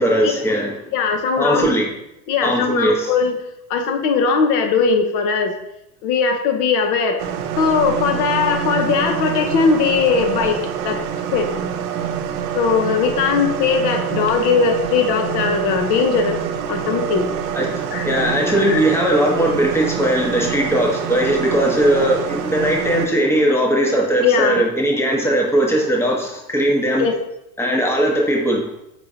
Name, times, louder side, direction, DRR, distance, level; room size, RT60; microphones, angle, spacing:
voice 1, 0.0-0.7 1.4-1.9 2.4-3.1 17.5-17.7 18.0-27.1 27.6-28.6, right 1 dB, 5° left, 0 dB, 0.8 m, -19 dB
voice 2, 0.9-1.7 2.3-3.3 3.7-5.6 6.0-7.2 7.6-10.6 10.8-11.0 11.3-11.5 12.5-16.4 16.7-17.3 17.9-18.1 18.6-18.8 24.2-24.6 27.0-27.2, left 5 dB, 55° left, 5 dB, 0.8 m, -19 dB
sound 1, 7.2-23.1, right 8 dB, 65° right, 0.6 m, -26 dB
4.8 x 3.8 x 2.7 m, 0.84 s
hypercardioid pair, 90°, 48 cm